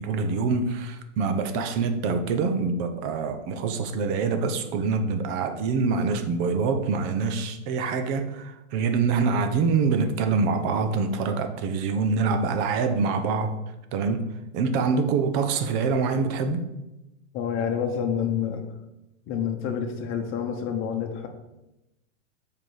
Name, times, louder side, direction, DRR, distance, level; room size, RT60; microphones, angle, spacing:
voice 1, 0.0-13.5 13.9-16.6, right 4 dB, 40° right, 7 dB, 1.0 m, -25 dB
voice 2, 17.3-18.7 19.3-21.3, left 7 dB, 30° left, 5 dB, 1.1 m, -28 dB
7.6 x 4.8 x 5.0 m, 0.94 s
hypercardioid pair, 135°, 38 cm